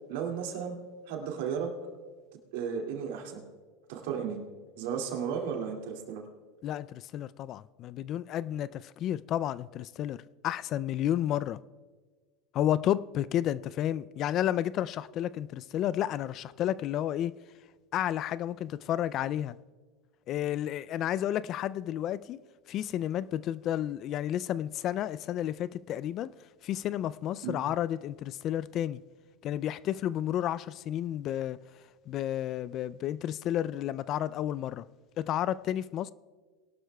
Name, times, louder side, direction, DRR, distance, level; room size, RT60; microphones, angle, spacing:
voice 1, 0.1-0.8 1.1-1.7 2.5-3.4 3.9-4.4 4.8-6.2 27.4-27.6, right 7 dB, 75° right, 2.3 m, -34 dB
voice 2, 6.6-11.6 12.5-17.4 17.9-19.6 20.3-22.4 22.7-26.3 26.6-29.0 29.4-31.6 32.1-34.9 35.2-36.1, left 11 dB, 45° left, 0.3 m, -31 dB
21.5 x 12.0 x 2.3 m
supercardioid pair, 115°, 0 cm